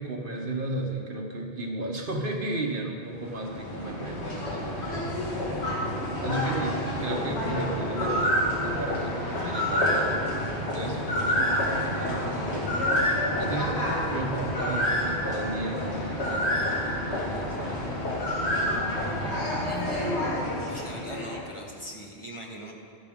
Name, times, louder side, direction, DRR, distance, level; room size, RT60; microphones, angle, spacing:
voice 1, 0.0-5.6 6.2-10.2 10.7-12.6 13.4-18.0, right 2 dB, 55° right, 1 dB, 1.3 m, -34 dB
sound 1, 3.1-21.5, left 1 dB, 85° left, 2.1 m, -28 dB
voice 2, 19.6-20.3 20.7-22.7, equal, 30° left, -1 dB, 1.2 m, -39 dB
13.5 x 10.5 x 3.7 m, 2.5 s
omnidirectional pair, 1.1 m